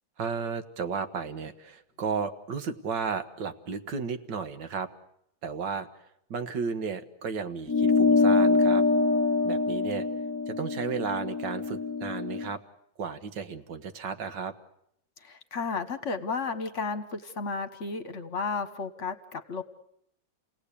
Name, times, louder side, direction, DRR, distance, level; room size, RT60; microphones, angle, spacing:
voice 1, 0.2-4.9 5.4-5.9 6.3-8.8 9.4-10.1 10.5-12.6 13.0-14.5, right 5 dB, 70° right, 9 dB, 1.9 m, -33 dB
sound 1, 7.7-12.5, left 4 dB, 20° left, 0.5 m, -24 dB
voice 2, 15.2-19.6, left 4 dB, 45° left, 9 dB, 1.5 m, -33 dB
30.0 x 18.0 x 8.5 m, 0.76 s
omnidirectional pair, 2.1 m